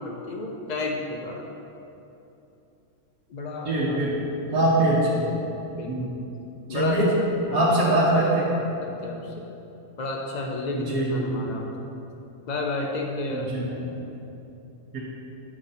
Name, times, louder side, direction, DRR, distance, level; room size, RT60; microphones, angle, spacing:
voice 1, 0.0-1.4 3.3-4.0 4.5-4.7 5.7-6.1 6.7-7.2 7.5-9.3 10.0-11.8 12.5-13.6, left 2 dB, 80° left, 0 dB, 0.4 m, -32 dB
voice 2, 3.6-4.2 4.5-5.3 5.9-6.0 6.7-7.1 7.5-8.5 10.7-11.5 13.3-13.7 14.9-15.0, right 1 dB, 85° right, -7 dB, 1.4 m, -23 dB
8.6 x 3.9 x 4.1 m, 2.9 s
omnidirectional pair, 1.5 m